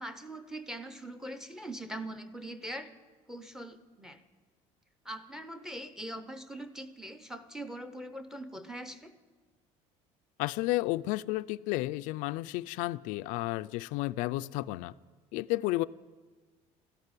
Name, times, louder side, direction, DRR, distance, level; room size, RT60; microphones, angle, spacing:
voice 1, 0.0-2.9 3.3-4.2 5.0-9.1, right 1 dB, 5° right, 9 dB, 0.7 m, -42 dB
voice 2, 10.4-14.9 15.3-15.8, left 19 dB, 85° left, 12 dB, 0.4 m, -32 dB
13.5 x 11.0 x 9.7 m, 1.4 s
cardioid pair, 175°, 13 cm